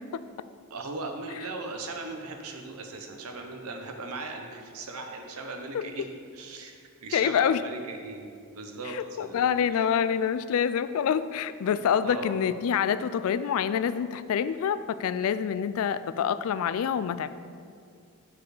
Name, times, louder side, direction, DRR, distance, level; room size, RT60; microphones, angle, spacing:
voice 1, 0.7-6.1 6.3-9.8 11.7-12.4, right 3 dB, 90° right, 4 dB, 0.8 m, -39 dB
voice 2, 7.1-7.6 8.9-17.3, left 8 dB, 80° left, 13 dB, 0.3 m, -26 dB
7.0 x 4.6 x 4.9 m, 2.2 s
head